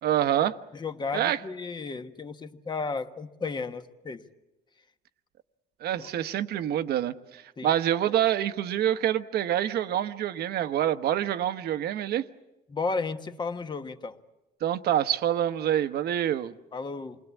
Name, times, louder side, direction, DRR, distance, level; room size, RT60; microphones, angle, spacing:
voice 1, 0.0-0.6 1.1-1.4 5.8-12.2 14.6-16.5, right 11 dB, 70° right, 1.0 m, -26 dB
voice 2, 0.7-4.2 6.0-6.1 7.6-7.7 12.7-14.2 16.7-17.2, left 4 dB, 25° left, 1.3 m, -33 dB
28.0 x 21.0 x 8.2 m
cardioid pair, 110°, 17 cm